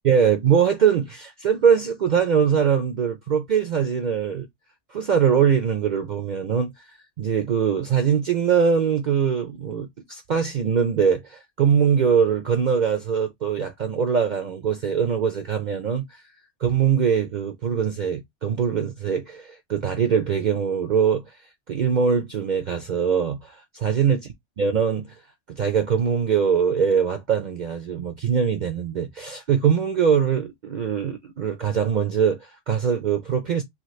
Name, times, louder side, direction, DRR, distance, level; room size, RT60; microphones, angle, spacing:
voice 1, 0.0-4.5 4.9-6.7 7.2-16.1 16.6-21.2 21.7-24.2 24.6-25.1 25.5-33.6, right 7 dB, 55° right, 0.5 m, -22 dB
2.9 x 2.3 x 3.0 m
omnidirectional pair, 1.2 m